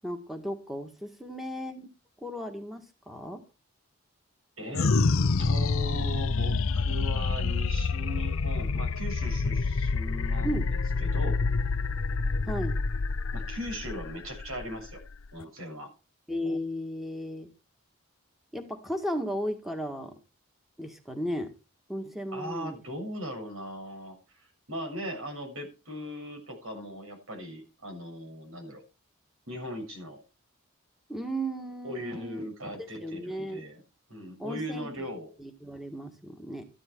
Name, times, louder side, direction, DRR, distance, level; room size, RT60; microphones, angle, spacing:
voice 1, 0.0-1.9 2.2-3.4 10.4-10.7 12.4-12.8 16.3-17.5 18.5-20.2 20.8-21.5 21.9-22.8 31.1-32.5 32.8-33.6 34.4-35.1 35.4-36.7, equal, ahead, 4 dB, 1.7 m, -35 dB
voice 2, 4.6-4.9 5.4-11.4 13.3-15.0 15.3-15.9 22.3-28.8 29.5-30.2 31.8-33.8 34.1-35.3, equal, 80° right, 4 dB, 6.9 m, -39 dB
sound 1, 4.7-15.4, left 4 dB, 75° left, 0.7 m, -27 dB
14.0 x 11.0 x 4.6 m, 0.30 s
head